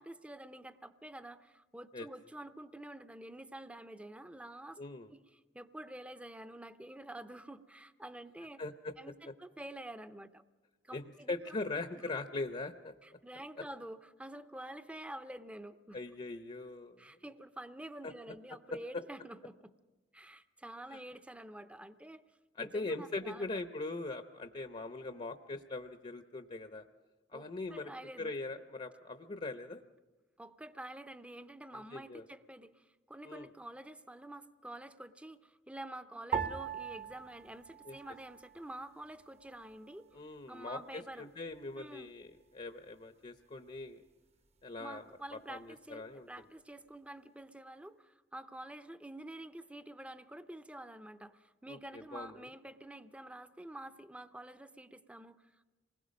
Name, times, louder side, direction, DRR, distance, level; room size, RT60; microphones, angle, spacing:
voice 1, 0.0-4.8 5.1-5.2 5.5-8.6 9.0-10.4 10.8-11.6 13.0-16.0 17.0-19.7 20.1-22.2 22.6-23.6 27.3-28.3 30.4-40.1 40.5-41.3 41.8-42.1 44.8-55.7, right 1 dB, 5° right, 11 dB, 0.6 m, -48 dB
voice 2, 4.8-5.1 8.6-8.9 9.3-9.4 10.9-12.9 13.6-13.7 15.9-17.0 18.0-18.3 18.7-18.8 20.9-21.0 22.6-26.8 27.3-27.9 28.2-29.8 31.7-32.3 33.2-33.5 37.9-38.0 40.1-44.0 44.6-45.0 45.3-46.3 51.7-52.5, left 2 dB, 40° left, 8 dB, 0.7 m, -41 dB
sound 1, 36.3-38.8 39.1-40.0 40.6-41.0, right 7 dB, 35° right, 0.9 m, -41 dB
27.5 x 20.5 x 5.3 m, 1.2 s
head